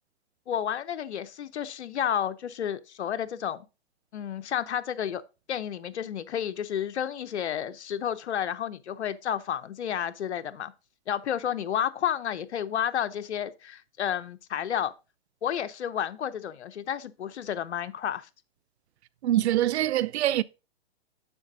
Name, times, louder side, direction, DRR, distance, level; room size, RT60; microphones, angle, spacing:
voice 1, 0.5-3.6 4.1-5.2 5.5-10.7 11.1-14.9 15.4-18.3, left 9 dB, 85° left, 0.8 m, -31 dB
voice 2, 19.2-20.4, right 13 dB, 75° right, 0.5 m, -24 dB
7.2 x 5.4 x 3.8 m
hypercardioid pair, 145°, 33 cm